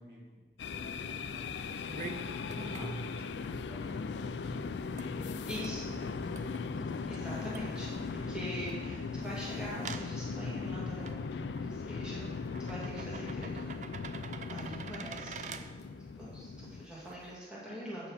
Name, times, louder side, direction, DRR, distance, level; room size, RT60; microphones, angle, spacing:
voice 1, 0.0-2.6 2.9-6.6, equal, 65° right, -4 dB, 2.7 m, -53 dB
sound 1, 0.6-16.9, left 4 dB, 85° left, 0.4 m, -38 dB
sound 2, 0.7-17.4, right 4 dB, 45° right, 0.4 m, -49 dB
voice 2, 2.5-3.0 5.5-5.8 7.1-15.8 16.2-18.1, equal, 5° right, -8 dB, 2.3 m, -44 dB
sound 3, 5.0-10.7, left 1 dB, 45° left, 0.8 m, -52 dB
9.0 x 7.0 x 5.7 m, 1.4 s
head